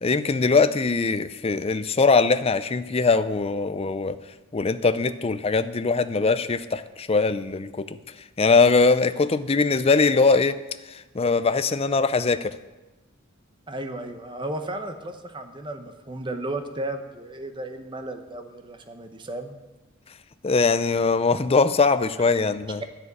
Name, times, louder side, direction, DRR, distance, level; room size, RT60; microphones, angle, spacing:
voice 1, 0.0-4.2 4.5-7.9 8.4-10.6 10.9-12.5 20.4-22.8, left 4 dB, 25° left, 12 dB, 0.4 m, -21 dB
voice 2, 13.7-19.5, right 1 dB, 20° right, 6 dB, 0.9 m, -34 dB
11.0 x 6.8 x 8.8 m, 1.1 s
head